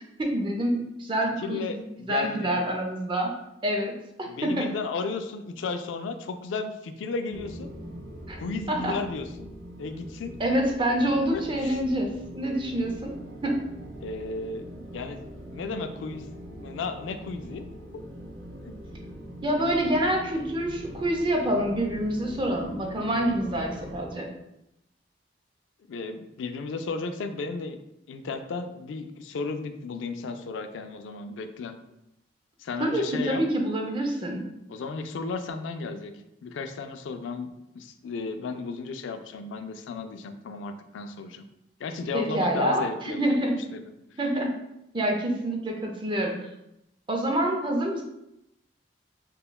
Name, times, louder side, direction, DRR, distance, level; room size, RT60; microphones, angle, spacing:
voice 1, 0.2-3.3 3.6-3.9 4.2-4.7 8.3-8.4 8.7-9.0 10.4-13.1 13.4-13.5 19.4-24.3 32.8-34.4 42.1-43.6 44.2-44.5 44.9-46.3 47.1-48.0, right 1 dB, 25° right, 1 dB, 0.5 m, -27 dB
voice 2, 1.4-2.6 4.3-7.7 8.4-9.5 9.8-10.4 11.3-11.8 14.0-14.6 14.9-15.2 15.5-16.3 16.5-17.6 17.9-18.0 18.6-18.7 25.9-27.8 28.1-31.8 32.6-33.4 34.7-37.5 37.7-41.5 41.8-43.9, left 4 dB, 85° left, 8 dB, 0.3 m, -34 dB
sound 1, 7.3-24.1, equal, 75° right, 0.6 m, -42 dB
5.4 x 2.2 x 2.2 m, 0.86 s
head